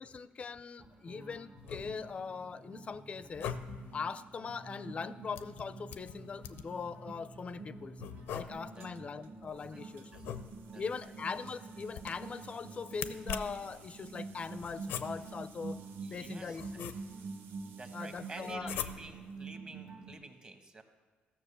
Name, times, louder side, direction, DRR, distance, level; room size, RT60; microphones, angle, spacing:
voice 1, 0.0-3.6 3.9-8.0 8.3-10.1 10.7-15.8 16.1-17.0 17.9-18.7, left 5 dB, 35° left, 15 dB, 0.5 m, -41 dB
sound 1, 0.8-20.1, right 4 dB, 50° right, 1.3 m, -47 dB
sound 2, 1.5-2.2 3.2-4.0 5.3-6.8 8.0-8.9 10.1-10.9 11.9-12.4 12.9-13.7 14.6-15.4 16.2-17.3 18.6-19.3, left 9 dB, 85° left, 0.6 m, -42 dB
sound 3, 1.8-18.6, right 7 dB, 80° right, 0.7 m, -63 dB
voice 2, 16.0-16.6 17.7-20.8, right 3 dB, 30° right, 6 dB, 1.2 m, -49 dB
14.5 x 6.6 x 6.8 m, 1.5 s
cardioid pair, 110°, 4 cm